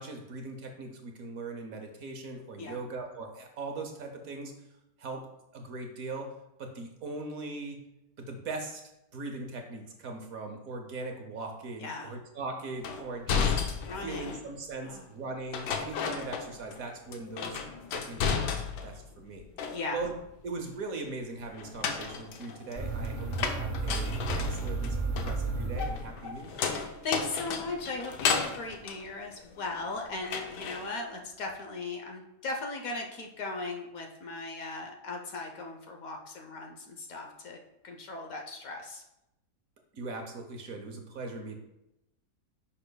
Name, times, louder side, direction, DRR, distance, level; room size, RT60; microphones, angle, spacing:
voice 1, 0.0-4.5 5.0-5.3 5.5-6.3 6.6-7.8 8.2-8.8 9.1-17.6 17.9-18.5 18.8-19.5 19.9-20.1 20.4-26.6 39.9-41.6, right 3 dB, 60° right, 4 dB, 1.2 m, -40 dB
voice 2, 11.8-12.1 13.7-14.4 14.8-15.0 19.7-20.0 26.7-37.6 37.8-39.0, left 3 dB, 60° left, 2 dB, 1.2 m, -38 dB
sound 1, 12.8-14.5 15.5-16.8 17.1-19.0 19.3-20.2 21.5-29.9 30.2-30.9, left 6 dB, 80° left, 1.3 m, -33 dB
sound 2, 22.8-26.5, right 3 dB, 40° right, 1.1 m, -33 dB
10.0 x 5.5 x 2.3 m, 0.87 s
omnidirectional pair, 1.8 m